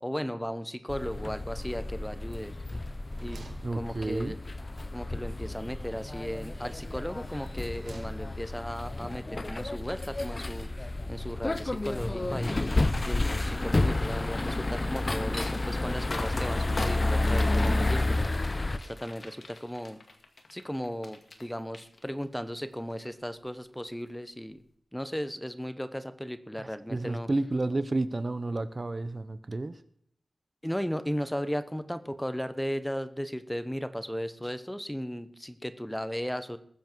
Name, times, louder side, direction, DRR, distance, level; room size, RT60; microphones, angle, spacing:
voice 1, 0.0-2.5 3.2-3.5 3.7-4.4 4.9-10.7 11.1-12.6 13.1-18.3 18.8-20.0 20.5-24.6 24.9-27.3 30.6-36.6, equal, 5° left, 11 dB, 1.0 m, -36 dB
sound 1, 0.9-18.8, left 2 dB, 35° left, 0.8 m, -30 dB
sound 2, 2.1-2.6 2.9-4.5 5.8-6.6 7.3-8.6, right 3 dB, 75° right, 2.0 m, -52 dB
voice 2, 3.6-4.4 26.6-29.8, right 2 dB, 40° right, 12 dB, 0.8 m, -31 dB
sound 3, 13.5-21.4 21.7-22.4 22.8-23.1, left 2 dB, 60° left, 2.0 m, -43 dB
20.5 x 7.4 x 4.6 m, 0.67 s
wide cardioid pair, 70°, 0 cm